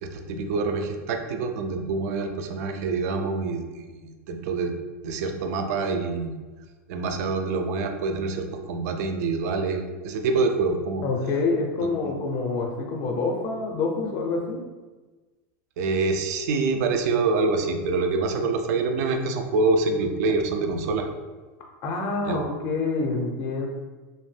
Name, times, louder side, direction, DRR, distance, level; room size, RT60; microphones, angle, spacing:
voice 1, 0.0-4.7 5.0-6.3 6.9-11.1 11.8-12.1 15.8-21.1 22.3-22.4, right 3 dB, 70° right, 5 dB, 0.4 m, -26 dB
voice 2, 11.0-14.6 21.8-23.7, left 3 dB, 45° left, 1 dB, 0.5 m, -27 dB
2.6 x 2.1 x 3.2 m, 1.3 s
supercardioid pair, 130°, 9 cm